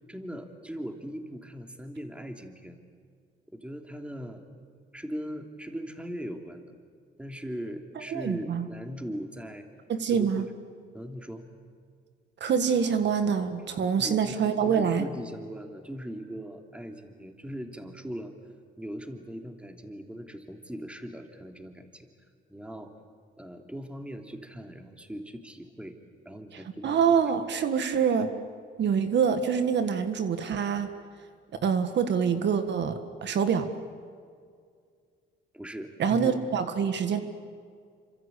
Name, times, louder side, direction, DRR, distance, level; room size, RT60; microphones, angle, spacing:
voice 1, 0.1-2.8 3.5-4.4 4.9-6.7 7.2-9.7 10.1-10.5 10.9-11.5 14.0-14.4 14.6-18.3 18.8-22.1 22.5-22.9 23.4-26.0 26.2-27.1 35.5-36.4, equal, 5° right, 4 dB, 3.0 m, -39 dB
voice 2, 8.1-8.7 9.9-10.5 12.4-15.0 26.5-28.3 28.8-30.9 31.6-33.7 36.0-37.2, right 7 dB, 60° right, 8 dB, 1.7 m, -25 dB
28.0 x 25.5 x 8.4 m, 2.1 s
cardioid pair, 90°, 20 cm